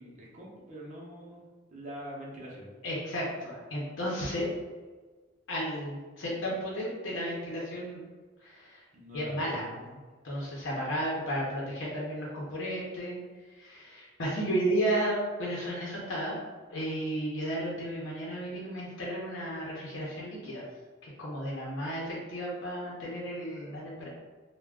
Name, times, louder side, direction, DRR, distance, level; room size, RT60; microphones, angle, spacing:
voice 1, 0.0-1.4 1.7-2.7 8.9-9.5, equal, 40° right, -3 dB, 0.6 m, -44 dB
voice 2, 2.8-4.5 5.5-8.0 8.4-8.8 9.1-10.0 10.2-13.2 13.6-16.4 16.7-20.7 21.0-24.1, equal, 90° left, -5 dB, 0.6 m, -33 dB
2.3 x 2.1 x 3.4 m, 1.4 s
head